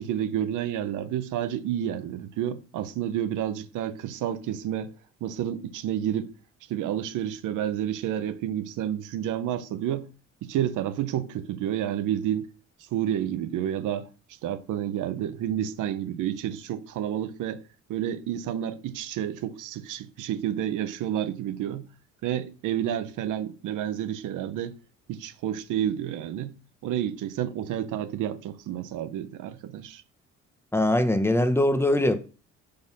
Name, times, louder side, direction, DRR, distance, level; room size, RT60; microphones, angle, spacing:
voice 1, 0.0-4.9 5.2-6.3 6.7-10.0 10.4-12.5 12.9-14.1 14.4-17.6 17.9-21.9 22.2-24.7 25.1-26.5 26.8-30.0, right 10 dB, 85° right, 0.9 m, -30 dB
voice 2, 30.7-32.2, left 1 dB, 10° left, 1.0 m, -22 dB
6.8 x 3.9 x 5.4 m
cardioid pair, 90°, 30 cm